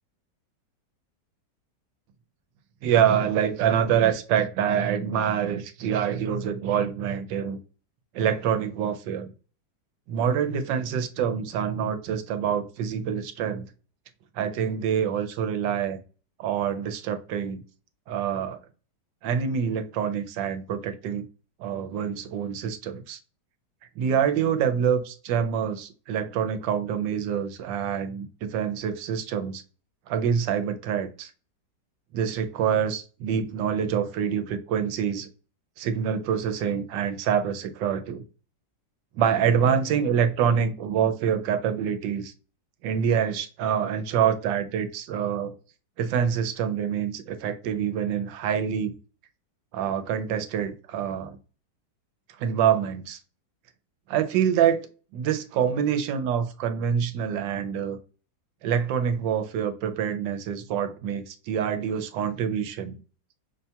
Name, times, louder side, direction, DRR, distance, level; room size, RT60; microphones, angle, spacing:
voice 1, 2.8-7.6 8.1-9.3 10.1-13.7 14.3-16.0 16.4-17.6 18.1-18.6 19.2-21.3 21.6-23.2 24.0-29.6 30.1-31.3 32.1-35.3 35.8-38.2 39.1-42.3 42.8-45.5 46.0-48.9 49.7-51.4 52.4-53.2 54.1-54.8 55.1-58.0 58.6-63.0, right 8 dB, 85° right, 9 dB, 1.3 m, -26 dB
5.7 x 2.2 x 2.7 m, 0.35 s
omnidirectional pair, 1.9 m